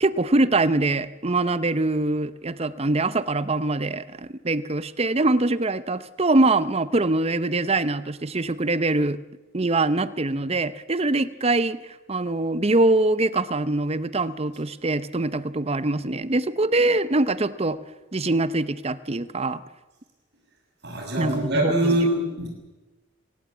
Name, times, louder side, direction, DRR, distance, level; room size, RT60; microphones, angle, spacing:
voice 1, 0.0-9.2 9.5-11.8 12.1-17.8 18.1-19.6 21.2-22.0, right 2 dB, 30° right, 15 dB, 0.8 m, -23 dB
voice 2, 20.8-22.5, right 1 dB, 60° right, 1 dB, 6.9 m, -23 dB
25.0 x 18.0 x 8.5 m, 1.1 s
head